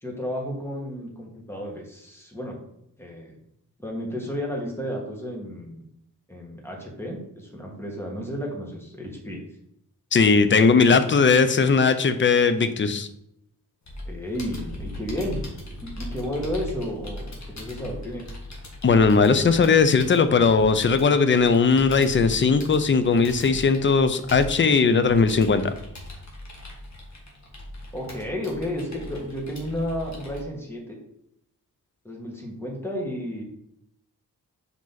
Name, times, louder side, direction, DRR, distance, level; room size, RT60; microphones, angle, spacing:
voice 1, 0.0-2.6 3.0-3.4 3.8-5.8 6.3-9.4 14.1-15.4 15.8-18.2 27.9-31.0 32.0-33.4, equal, 5° left, -1 dB, 1.8 m, -32 dB
voice 2, 10.1-13.1 18.8-25.6, left 5 dB, 35° left, 11 dB, 0.6 m, -19 dB
Computer keyboard, 13.9-30.4, left 1 dB, 50° left, 1.8 m, -39 dB
5.5 x 5.0 x 4.0 m, 0.77 s
wide cardioid pair, 105°, 35 cm